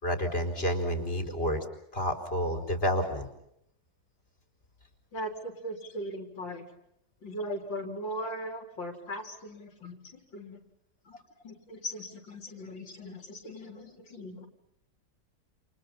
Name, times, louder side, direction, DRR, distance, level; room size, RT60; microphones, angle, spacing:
voice 1, 0.0-1.6 1.9-3.3, equal, 30° left, 6 dB, 4.7 m, -29 dB
voice 2, 5.1-6.7 7.2-10.0 10.3-10.6 11.1-11.2 11.4-14.5, equal, 85° left, 5 dB, 4.7 m, -39 dB
29.5 x 28.5 x 5.7 m, 0.79 s
omnidirectional pair, 2.0 m